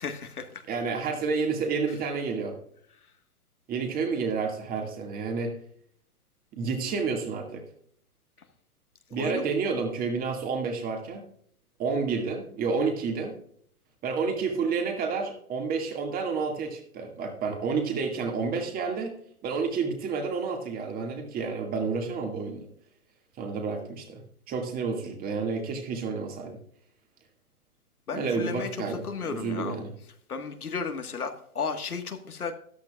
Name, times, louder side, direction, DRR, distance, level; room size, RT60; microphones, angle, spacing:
voice 1, 0.0-0.6 9.2-9.5 28.1-29.8 30.3-32.5, left 5 dB, 75° left, 1.7 m, -34 dB
voice 2, 0.7-2.6 3.7-5.6 6.5-7.6 9.1-11.3 11.8-13.3 14.0-19.1 19.4-22.7 23.4-24.2 24.5-26.6 28.1-29.9, right 5 dB, 20° right, 2.1 m, -30 dB
13.5 x 11.5 x 2.4 m
figure-of-eight pair, 125°, 44 cm